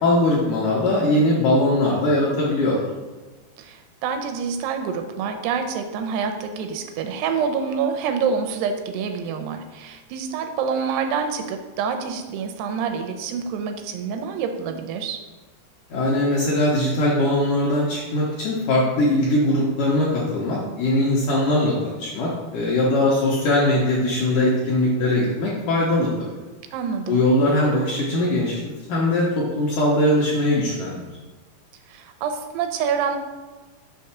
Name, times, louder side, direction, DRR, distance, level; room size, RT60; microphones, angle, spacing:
voice 1, 0.0-2.8 15.9-26.3 27.1-31.0, left 1 dB, 75° left, -5 dB, 1.9 m, -21 dB
voice 2, 3.6-15.2 26.7-27.2 31.9-33.2, right 6 dB, 85° right, 6 dB, 2.6 m, -27 dB
6.5 x 3.2 x 5.8 m, 1.3 s
omnidirectional pair, 4.7 m